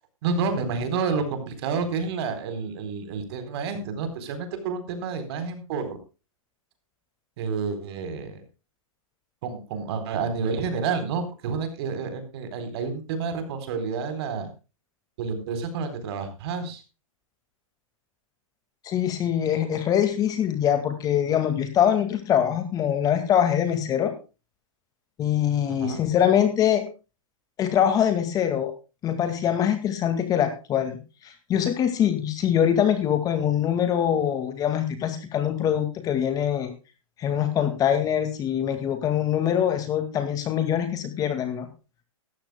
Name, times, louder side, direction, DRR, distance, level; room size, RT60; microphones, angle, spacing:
voice 1, 0.2-6.0 7.4-8.4 9.4-14.5 15.2-16.8 25.7-26.0, right 5 dB, 45° right, 8 dB, 4.0 m, -29 dB
voice 2, 18.8-24.1 25.2-26.8 27.6-28.7 29.0-36.7 37.2-41.7, left 9 dB, 20° left, 8 dB, 2.0 m, -23 dB
17.5 x 14.0 x 2.2 m, 0.31 s
hypercardioid pair, 145°, 18 cm